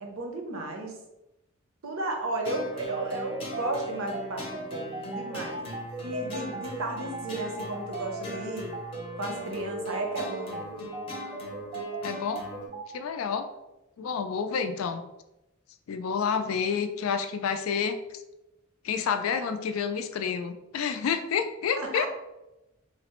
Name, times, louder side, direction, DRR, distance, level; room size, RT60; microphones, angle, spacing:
voice 1, 0.0-0.9 1.8-8.7 9.2-10.9 21.8-22.1, right 2 dB, 75° right, 2 dB, 0.6 m, -34 dB
sound 1, 2.4-12.7, right 1 dB, 30° left, 0.6 m, -40 dB
sound 2, 2.9-12.8, right 3 dB, 30° right, 0.4 m, -38 dB
voice 2, 12.0-12.4 12.9-13.5 14.0-15.0 15.9-18.0 18.8-22.1, left 6 dB, 75° left, 8 dB, 0.3 m, -29 dB
3.2 x 2.0 x 2.9 m, 0.94 s
head